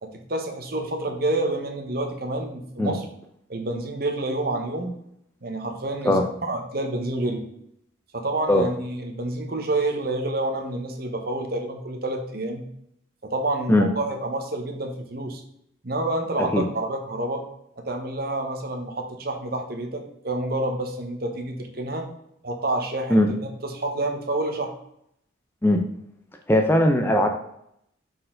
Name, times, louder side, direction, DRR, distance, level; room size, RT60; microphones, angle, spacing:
voice 1, 0.0-3.1 3.5-4.9 5.4-7.4 8.1-12.6 13.2-15.4 15.8-17.4 17.8-22.1 22.4-24.7, right 2 dB, 50° right, 4 dB, 1.0 m, -28 dB
voice 2, 26.5-27.3, left 1 dB, 10° left, 4 dB, 0.5 m, -18 dB
6.5 x 4.4 x 3.8 m, 0.74 s
head